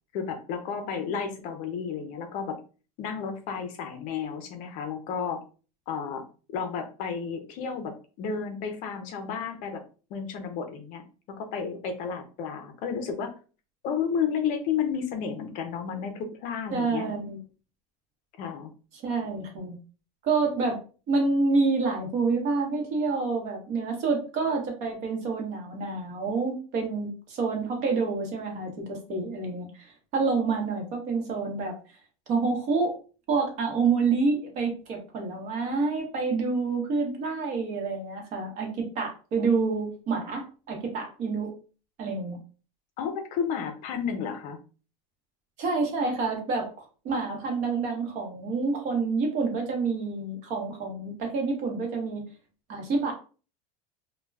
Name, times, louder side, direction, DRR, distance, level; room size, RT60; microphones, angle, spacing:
voice 1, 0.1-2.6 3.0-5.4 5.9-6.2 6.5-9.8 10.1-11.0 11.3-13.3 13.8-17.1 18.4-18.7 43.0-44.6, left 6 dB, 45° left, 6 dB, 0.5 m, -32 dB
voice 2, 16.7-17.4 18.9-19.8 20.2-20.8 21.1-31.7 32.3-33.0 33.3-41.5 42.0-42.4 45.6-52.2 52.7-53.1, right 4 dB, 40° right, 1 dB, 0.9 m, -28 dB
2.2 x 2.2 x 3.2 m, 0.36 s
supercardioid pair, 150°, 18 cm